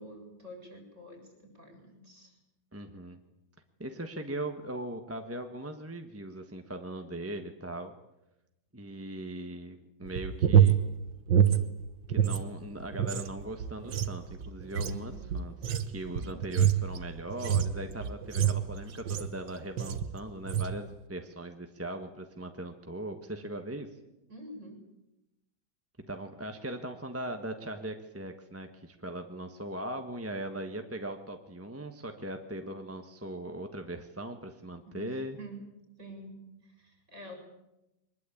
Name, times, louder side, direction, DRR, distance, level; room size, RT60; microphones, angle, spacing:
voice 1, 0.0-2.4 14.9-15.4 16.2-16.5 24.3-24.8 34.9-35.7 36.0-37.3, right 1 dB, 35° right, 3 dB, 7.4 m, -47 dB
voice 2, 2.7-3.2 3.8-7.9 8.7-10.8 12.1-15.5 15.9-23.9 26.1-35.4, right 1 dB, 10° right, 5 dB, 1.1 m, -39 dB
sound 1, 10.0-12.4 12.7-19.4 19.8-20.1 20.4-20.8, right 9 dB, 65° right, 1.8 m, -27 dB
23.0 x 20.5 x 8.6 m, 0.93 s
omnidirectional pair, 2.2 m